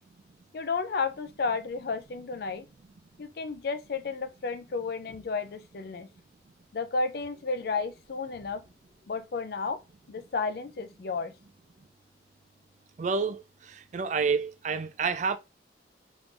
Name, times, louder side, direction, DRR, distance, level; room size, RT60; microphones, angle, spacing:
voice 1, 0.5-2.7 3.2-6.1 6.7-8.6 9.1-9.8 10.1-11.3, left 4 dB, 55° left, 0.4 m, -32 dB
voice 2, 13.0-13.4 13.7-15.4, right 5 dB, 40° right, 0.3 m, -28 dB
3.7 x 3.0 x 2.5 m
head